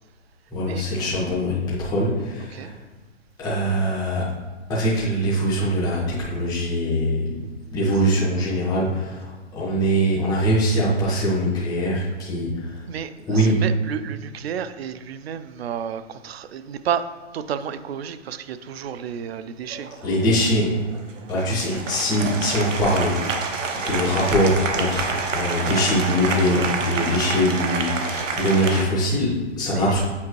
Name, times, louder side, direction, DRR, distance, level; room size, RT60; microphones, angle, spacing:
voice 1, 0.5-2.7 3.4-4.3 4.7-7.3 7.7-12.8 13.3-13.6 20.0-20.8 21.3-23.2 23.8-30.0, equal, ahead, 0.4 m, -22 dB
voice 2, 2.4-2.7 12.9-19.9 29.7-30.0, right 8 dB, 60° right, 0.4 m, -31 dB
Applause, 19.7-28.8, right 4 dB, 90° right, 1.0 m, -28 dB
8.5 x 4.4 x 3.1 m
hypercardioid pair, 155°, 37 cm